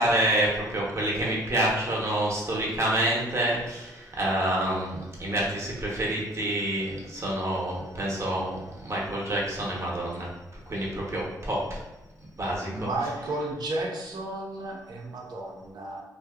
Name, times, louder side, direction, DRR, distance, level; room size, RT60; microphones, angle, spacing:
voice 1, 0.0-10.3 10.7-11.8 12.4-12.9, right 1 dB, 40° right, -4 dB, 0.8 m, -28 dB
voice 2, 12.6-16.0, right 2 dB, 70° right, -1 dB, 0.5 m, -33 dB
2.6 x 2.1 x 2.3 m, 1.0 s
cardioid pair, 60°, 7 cm